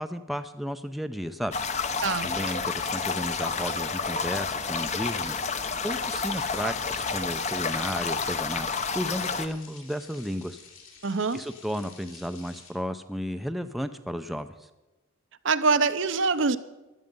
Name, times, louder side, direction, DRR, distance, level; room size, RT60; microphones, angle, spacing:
voice 1, 0.0-1.6 2.2-8.7 8.9-10.6 11.3-14.7, equal, ahead, 0.5 m, -33 dB
sound 1, 1.5-9.5, left 5 dB, 30° left, 0.7 m, -30 dB
sound 2, 5.9-12.7, left 6 dB, 70° left, 3.7 m, -51 dB
voice 2, 11.0-11.4 15.4-16.6, right 4 dB, 60° right, 0.7 m, -24 dB
15.0 x 12.0 x 5.3 m
head